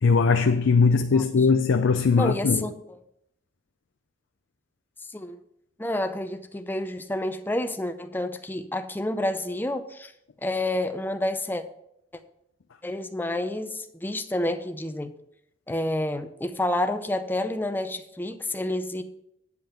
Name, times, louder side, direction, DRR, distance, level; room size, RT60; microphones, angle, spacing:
voice 1, 0.0-2.7, left 4 dB, 85° left, 0.5 m, -20 dB
voice 2, 2.2-3.0 5.1-5.4 5.8-10.1 10.4-11.6 12.8-15.1 15.7-19.0, left 1 dB, 10° left, 0.6 m, -29 dB
9.4 x 5.5 x 5.8 m
head